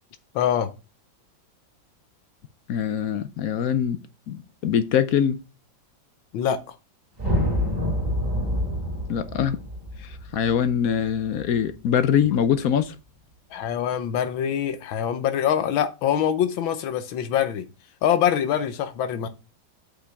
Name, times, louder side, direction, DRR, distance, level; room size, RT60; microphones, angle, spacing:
voice 1, 0.3-0.7 6.3-6.8 13.5-17.7 18.0-19.3, left 9 dB, 85° left, 1.6 m, -24 dB
voice 2, 2.7-4.0 4.3-5.4 9.1-9.6 10.0-13.0, left 8 dB, 65° left, 0.9 m, -23 dB
sound 1, 7.2-11.6, equal, 30° right, 3.0 m, -27 dB
8.2 x 6.1 x 3.4 m
omnidirectional pair, 2.1 m